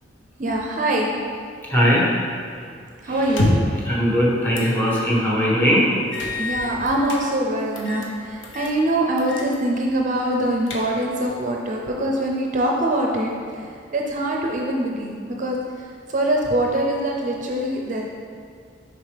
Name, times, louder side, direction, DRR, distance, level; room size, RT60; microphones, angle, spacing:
voice 1, 0.4-1.1 3.0-3.5 6.2-18.0, right 1 dB, 40° right, 0 dB, 0.5 m, -24 dB
voice 2, 1.7-2.1 3.9-5.9, equal, 10° left, -5 dB, 1.2 m, -19 dB
sound 1, 3.2-3.8 4.5-4.8 5.2-5.3 6.1-7.2 7.8-8.1 8.4-8.8 9.2-9.5 9.8-9.9 10.4-11.2, left 2 dB, 85° left, 0.8 m, -26 dB
6.5 x 4.9 x 3.3 m, 2.2 s
head